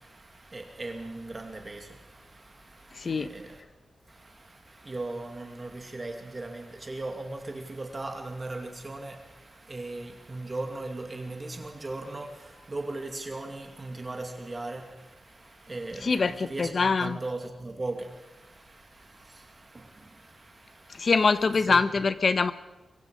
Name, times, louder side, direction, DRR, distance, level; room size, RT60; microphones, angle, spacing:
voice 1, 0.0-3.6 4.1-21.1 21.7-21.8, right 2 dB, 30° right, 3 dB, 2.5 m, -39 dB
voice 2, 2.9-3.3 16.0-17.2 20.9-22.5, left 4 dB, 45° left, 12 dB, 1.1 m, -24 dB
24.5 x 23.0 x 5.2 m, 1.1 s
wide cardioid pair, 120°, 0 cm